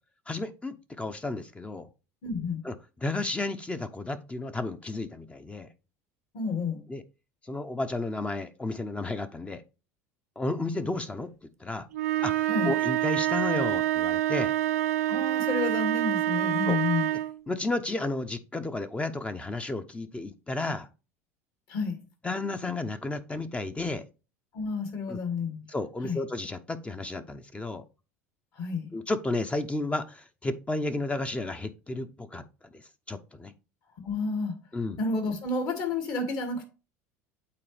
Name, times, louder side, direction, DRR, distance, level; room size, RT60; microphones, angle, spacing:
voice 1, 0.3-1.9 2.6-5.7 6.9-7.0 7.5-9.6 10.4-11.9 12.2-14.5 16.7-16.8 17.5-20.9 22.2-24.0 25.1-25.2 25.7-27.8 28.9-32.4 32.7-33.5 34.7-35.0, left 2 dB, 15° left, 0.7 m, -32 dB
voice 2, 2.2-2.7 6.3-6.8 12.5-12.8 15.1-17.0 21.7-22.0 24.5-25.6 26.0-26.2 28.6-28.9 34.0-34.6 35.0-36.7, left 4 dB, 55° left, 2.3 m, -30 dB
sound 1, 11.9-17.4, right 14 dB, 80° right, 0.4 m, -27 dB
8.5 x 4.1 x 3.3 m
hypercardioid pair, 80°, 8 cm